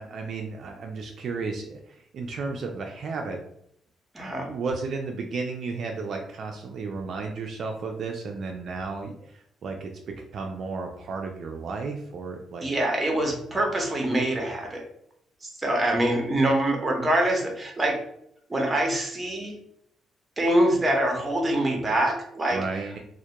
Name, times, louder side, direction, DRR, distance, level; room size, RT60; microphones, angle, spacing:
voice 1, 0.0-1.8 2.1-3.4 4.5-9.3 9.6-9.9 10.3-12.7 22.5-23.0, right 4 dB, 60° right, 2 dB, 0.3 m, -33 dB
voice 2, 4.1-4.5 12.6-14.8 15.6-18.0 18.5-19.5 20.4-22.6, right 1 dB, 20° right, 1 dB, 0.7 m, -24 dB
2.1 x 2.1 x 2.8 m, 0.71 s
cardioid pair, 90°, 0 cm